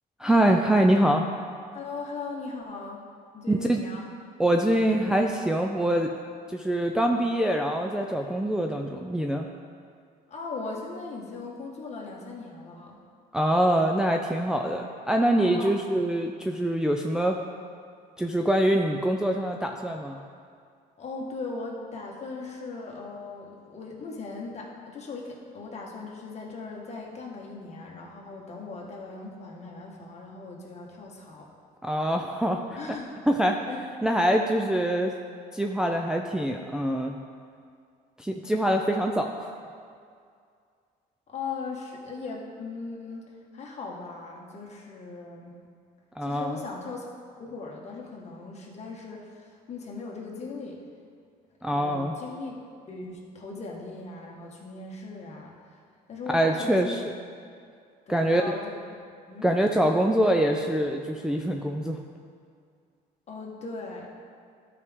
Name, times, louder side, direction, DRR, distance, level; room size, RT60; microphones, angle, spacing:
voice 1, 0.2-1.2 3.5-3.8 4.4-6.1 6.5-9.5 13.3-17.4 18.2-20.2 31.8-32.6 33.3-33.6 34.0-35.1 35.5-37.2 38.2-39.5 46.2-46.6 51.6-52.1 56.3-57.1 58.1-58.4 59.4-62.0, right 1 dB, 5° right, 1 dB, 0.4 m, -24 dB
voice 2, 1.7-3.0 3.3-4.0 10.3-13.0 15.4-15.7 21.0-31.5 32.8-33.2 33.7-33.8 41.3-45.5 46.2-47.1 47.4-50.8 51.7-52.6 52.9-55.8 56.1-57.0 58.1-58.7 59.3-59.5 63.3-64.1, left 3 dB, 40° left, -2 dB, 1.5 m, -39 dB
12.0 x 4.9 x 3.6 m, 2.2 s
cardioid pair, 110°, 17 cm